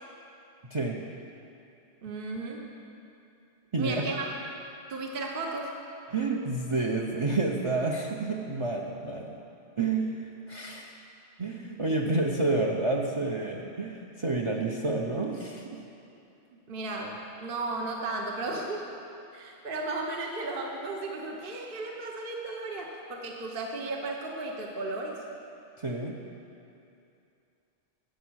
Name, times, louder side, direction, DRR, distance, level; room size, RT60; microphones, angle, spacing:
voice 1, 2.0-2.7 3.8-4.3 4.9-5.7 16.7-18.9 19.3-25.2, right 2 dB, 50° right, 1 dB, 1.2 m, -35 dB
voice 2, 3.7-4.1 6.1-9.4 9.8-10.9 11.4-15.8 25.8-26.2, right 3 dB, 30° right, 0 dB, 0.7 m, -29 dB
14.5 x 8.3 x 6.3 m, 2.7 s
omnidirectional pair, 1.2 m